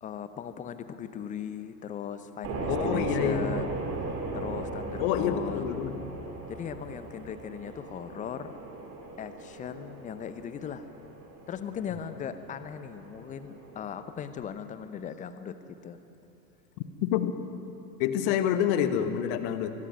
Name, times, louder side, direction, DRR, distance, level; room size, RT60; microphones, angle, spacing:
voice 1, 0.0-3.7 4.3-5.7 6.5-8.5 9.2-10.8 11.5-16.0, left 8 dB, 15° left, 12 dB, 0.8 m, -38 dB
sound 1, 2.4-14.4, right 3 dB, 30° right, 2.9 m, -38 dB
voice 2, 2.7-3.6 5.0-6.1 17.0-17.3 18.0-19.7, left 9 dB, 35° left, 10 dB, 1.3 m, -27 dB
24.0 x 21.0 x 5.5 m, 2.9 s
figure-of-eight pair, 95°, 49 cm